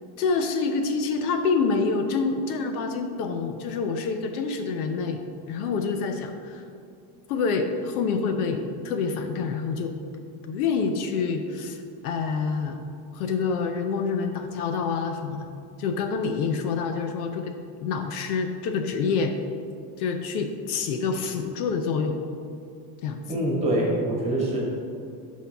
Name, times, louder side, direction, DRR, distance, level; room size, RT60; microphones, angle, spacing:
voice 1, 0.2-5.2 5.5-6.6 7.3-9.9 10.5-12.8 13.1-15.5 15.8-19.4 20.0-22.2 23.0-23.3, left 5 dB, 70° left, 6 dB, 0.8 m, -27 dB
voice 2, 23.3-24.6, right 1 dB, 15° right, -4 dB, 1.9 m, -24 dB
13.0 x 4.6 x 3.5 m, 2.5 s
cardioid pair, 170°, 47 cm